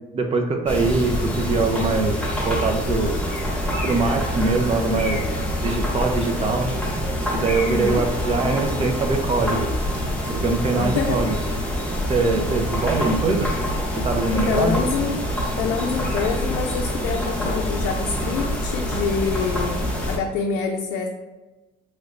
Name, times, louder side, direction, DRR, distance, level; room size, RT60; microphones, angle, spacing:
voice 1, 0.1-2.2 2.5-3.1 3.8-5.2 5.6-6.7 7.3-9.7 10.3-11.4 12.1-13.5 13.9-14.8, right 3 dB, 35° right, 3 dB, 0.6 m, -23 dB
sound 1, 0.7-20.2, left 1 dB, 5° left, 0.9 m, -26 dB
voice 2, 7.7-8.0 10.8-11.2 14.3-15.3 15.6-21.1, left 5 dB, 80° left, 2 dB, 0.4 m, -26 dB
3.2 x 3.0 x 2.5 m, 1.1 s
cardioid pair, 110°, 17 cm